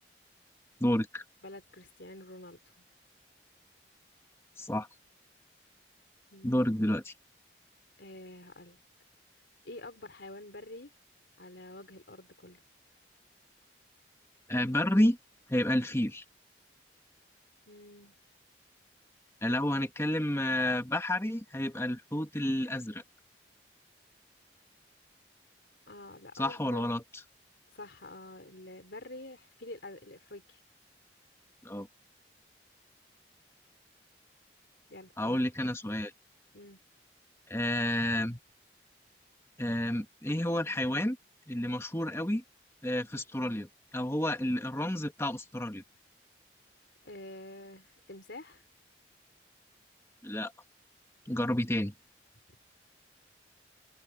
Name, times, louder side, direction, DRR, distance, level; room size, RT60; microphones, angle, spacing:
voice 1, 0.8-1.2 4.6-4.9 6.4-7.1 14.5-15.2 15.5-16.2 19.4-23.0 26.3-27.0 31.6-31.9 35.2-36.1 37.5-38.4 39.6-41.2 41.5-42.4 42.8-43.7 43.9-45.8 50.2-50.5 51.2-51.9, left 1 dB, 15° left, 1.7 m, -30 dB
voice 2, 1.4-2.8 6.3-6.7 8.0-8.8 9.7-10.9 11.4-12.6 17.7-18.1 25.9-26.9 27.7-30.6 34.9-35.4 36.5-36.8 47.0-48.6, left 2 dB, 75° left, 3.5 m, -47 dB
open air
head